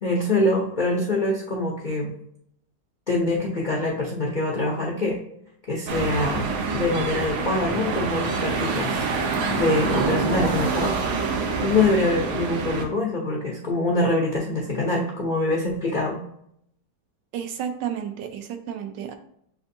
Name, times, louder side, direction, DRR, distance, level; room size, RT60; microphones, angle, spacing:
voice 1, 0.0-2.1 3.1-5.2 5.7-9.0 9.5-11.0 11.6-16.2, left 2 dB, 85° left, -2 dB, 0.4 m, -24 dB
sound 1, 5.9-12.9, right 4 dB, 65° right, 0.7 m, -26 dB
voice 2, 8.5-8.8 17.3-19.1, right 9 dB, 90° right, 7 dB, 1.3 m, -32 dB
6.9 x 2.5 x 2.6 m, 0.72 s
omnidirectional pair, 1.8 m